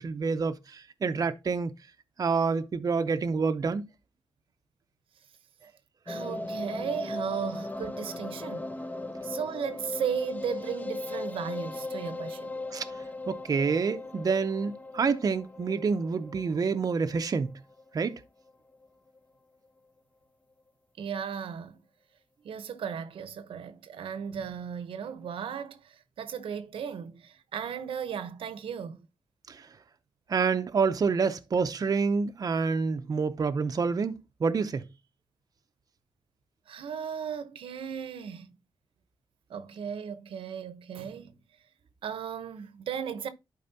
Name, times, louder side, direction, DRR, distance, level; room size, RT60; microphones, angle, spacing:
voice 1, 0.0-1.7 2.2-3.9 12.7-17.5 17.9-18.2 29.5-29.7 30.3-34.1 34.4-34.8, right 5 dB, 45° right, 0.7 m, -28 dB
sound 1, 6.1-18.2 18.5-18.6 18.8-18.9 19.2-19.3, left 2 dB, 20° left, 0.7 m, -38 dB
voice 2, 6.1-8.7 9.2-12.5 21.0-21.7 22.4-29.0 36.7-38.5 39.5-41.3 42.0-43.3, right 7 dB, 80° right, 0.9 m, -36 dB
11.0 x 4.9 x 2.7 m
cardioid pair, 105°, 9 cm